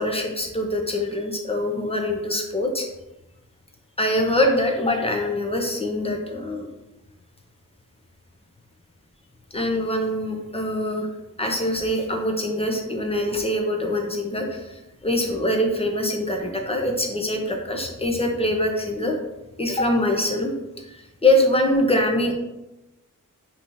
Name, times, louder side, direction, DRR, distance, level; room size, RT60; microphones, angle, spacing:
voice 1, 0.0-2.9 4.0-6.7 9.5-11.1 11.4-19.1 19.6-20.5 20.8-22.3, left 1 dB, 20° left, 2 dB, 0.8 m, -24 dB
5.3 x 3.0 x 2.6 m, 0.96 s
wide cardioid pair, 65°, 33 cm